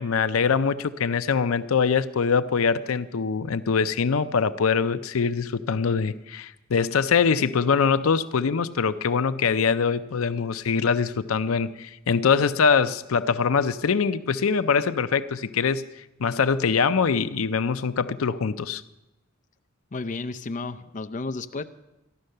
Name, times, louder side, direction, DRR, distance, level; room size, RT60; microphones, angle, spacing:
voice 1, 0.0-15.8 16.2-18.8, left 5 dB, 85° left, 13 dB, 0.5 m, -23 dB
voice 2, 19.9-21.6, left 3 dB, 40° left, 9 dB, 0.5 m, -32 dB
14.5 x 11.5 x 6.6 m, 0.95 s
head